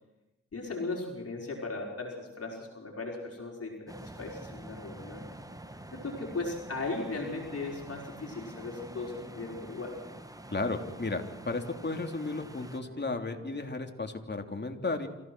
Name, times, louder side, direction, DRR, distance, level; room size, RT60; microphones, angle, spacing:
voice 1, 0.5-5.2 5.9-10.0, left 3 dB, 55° left, 0 dB, 5.2 m, -37 dB
sound 1, 3.9-12.8, right 1 dB, 10° right, 1.5 m, -47 dB
sound 2, 4.8-13.7, right 2 dB, 40° right, 5.4 m, -54 dB
voice 2, 10.5-15.1, left 3 dB, 35° left, 4 dB, 3.2 m, -34 dB
27.5 x 16.0 x 6.2 m, 0.97 s
cardioid pair, 45°, 29 cm